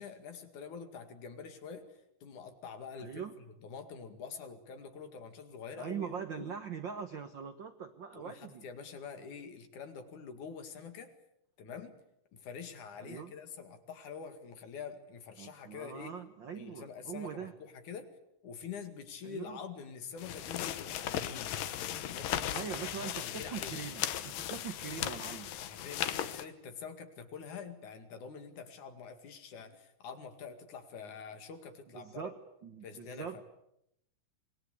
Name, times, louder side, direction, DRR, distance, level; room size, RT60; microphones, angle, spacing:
voice 1, 0.0-6.1 6.4-6.5 8.1-11.1 11.6-12.0 12.3-16.2 16.5-18.2 18.4-21.6 22.0-23.9 25.6-32.3 32.8-33.4, left 6 dB, 65° left, 8 dB, 3.5 m, -46 dB
voice 2, 3.0-3.3 5.8-8.6 13.0-13.3 15.4-17.5 19.2-19.6 22.5-25.5 31.9-33.4, right 7 dB, 65° right, 9 dB, 1.1 m, -42 dB
sound 1, 20.2-26.4, left 11 dB, 85° left, 2.8 m, -37 dB
27.0 x 21.5 x 8.4 m, 0.80 s
omnidirectional pair, 3.8 m